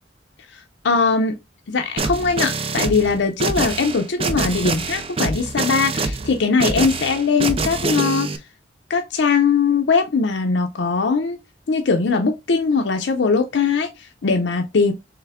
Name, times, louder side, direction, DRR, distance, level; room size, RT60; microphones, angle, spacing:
voice 1, 0.5-1.4 1.7-8.4 8.9-11.4 11.7-14.9, left 4 dB, 80° left, 0.5 m, -20 dB
sound 1, 2.0-8.4, right 3 dB, 30° right, 0.4 m, -25 dB
3.4 x 3.2 x 3.5 m
head